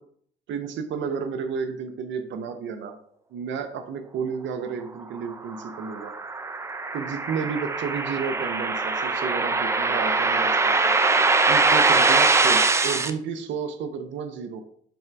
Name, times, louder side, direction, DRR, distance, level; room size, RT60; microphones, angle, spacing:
voice 1, 0.5-3.0 3.3-6.1 6.9-10.9 11.5-14.6, right 6 dB, 65° right, 7 dB, 0.6 m, -31 dB
sound 1, 5.3-13.1, right 3 dB, 15° right, 0.4 m, -22 dB
3.5 x 3.3 x 4.4 m, 0.64 s
cardioid pair, 90°, 21 cm